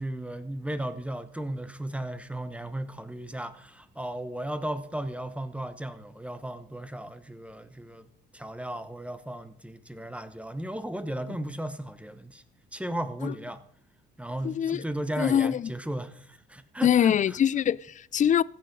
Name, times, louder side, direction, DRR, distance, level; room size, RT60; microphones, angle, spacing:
voice 1, 0.0-8.1 8.3-12.4 12.7-13.6 14.2-17.4, right 1 dB, 5° right, 0.9 m, -35 dB
voice 2, 14.4-14.8 15.2-15.6 16.8-18.4, left 9 dB, 40° left, 0.4 m, -23 dB
15.5 x 6.5 x 5.4 m
cardioid pair, 90°, 20 cm